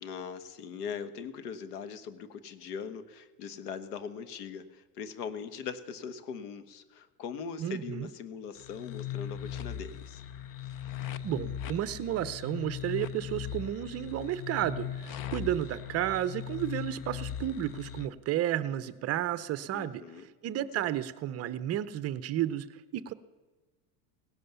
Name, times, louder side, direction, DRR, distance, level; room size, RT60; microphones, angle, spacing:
voice 1, 0.0-10.2 19.7-20.3 20.8-20.9, left 6 dB, 80° left, 12 dB, 1.5 m, -41 dB
voice 2, 7.6-8.1 11.2-20.0 20.4-22.7 22.9-23.1, right 12 dB, 35° right, 15 dB, 0.6 m, -32 dB
sound 1, 8.5-18.1, left 10 dB, 45° left, 1.0 m, -39 dB
17.5 x 11.0 x 6.9 m, 1.3 s
supercardioid pair, 130°, 46 cm